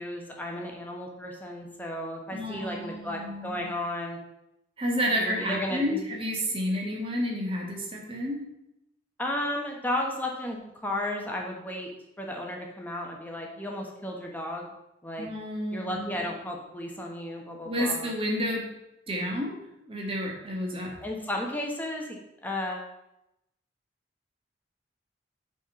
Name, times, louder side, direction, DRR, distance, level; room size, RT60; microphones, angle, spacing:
voice 1, 0.0-4.2 5.2-6.1 9.2-11.9 12.2-14.7 15.0-15.3 15.7-18.0 21.0-22.9, left 1 dB, 10° left, 0 dB, 1.2 m, -34 dB
voice 2, 2.3-3.7 4.8-8.5 15.2-16.3 17.6-18.7 19.1-19.6 19.9-20.9, equal, 30° right, -1 dB, 1.8 m, -30 dB
8.0 x 4.4 x 5.6 m, 0.86 s
head